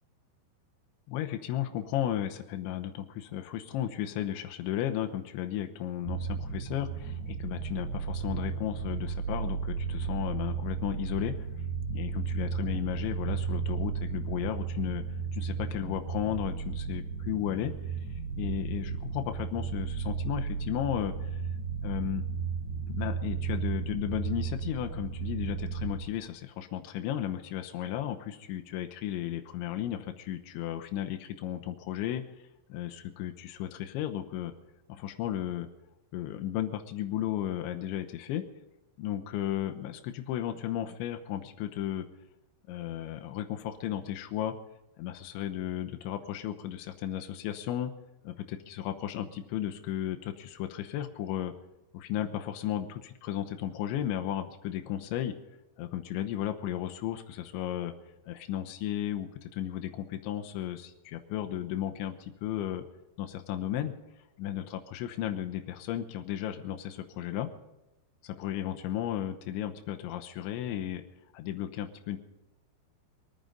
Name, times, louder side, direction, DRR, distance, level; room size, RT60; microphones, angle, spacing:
voice 1, 1.1-11.5 11.9-15.0 15.3-17.7 18.4-21.3 21.8-22.2 22.9-32.2 32.7-34.5 34.9-35.7 36.1-38.4 39.0-42.1 42.7-44.5 45.0-47.9 48.2-51.5 51.9-55.3 55.8-57.9 58.3-62.8 63.2-63.9 64.4-67.5 68.2-71.0 71.3-72.2, left 11 dB, 90° left, 6 dB, 3.3 m, -34 dB
sound 1, 6.0-25.9, right 6 dB, 75° right, 4.9 m, -34 dB
23.5 x 9.3 x 5.2 m, 0.98 s
omnidirectional pair, 5.3 m